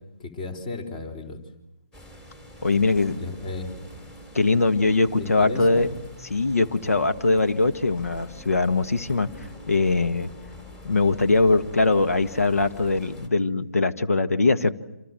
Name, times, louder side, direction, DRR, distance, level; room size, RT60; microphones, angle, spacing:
voice 1, 0.2-1.4 3.1-3.8 5.2-5.9, left 3 dB, 30° left, 3 dB, 4.2 m, -34 dB
sound 1, 1.9-13.3, left 1 dB, 10° left, 3.6 m, -44 dB
voice 2, 2.6-3.2 4.3-5.9 6.3-10.3 10.8-14.7, left 3 dB, 65° left, 8 dB, 1.8 m, -22 dB
28.0 x 28.0 x 7.6 m, 0.93 s
figure-of-eight pair, 145°, 8 cm